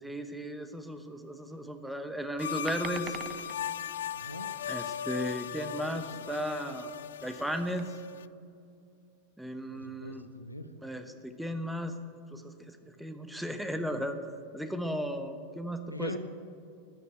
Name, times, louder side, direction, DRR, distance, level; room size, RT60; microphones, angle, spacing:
voice 1, 0.0-3.2 4.7-6.9 7.2-7.9 9.4-10.3 10.8-11.9 12.3-14.2 14.5-16.2, equal, ahead, 7 dB, 1.1 m, -35 dB
sound 1, 2.4-8.3, left 9 dB, 60° left, 0.3 m, -38 dB
sound 2, 2.7-3.6 6.9-7.9, right 10 dB, 30° right, 0.5 m, -44 dB
voice 2, 4.1-4.5 9.7-10.7 15.9-16.2, left 1 dB, 85° left, 9 dB, 0.9 m, -41 dB
14.0 x 9.4 x 8.0 m, 2.5 s
figure-of-eight pair, 90°, 0 cm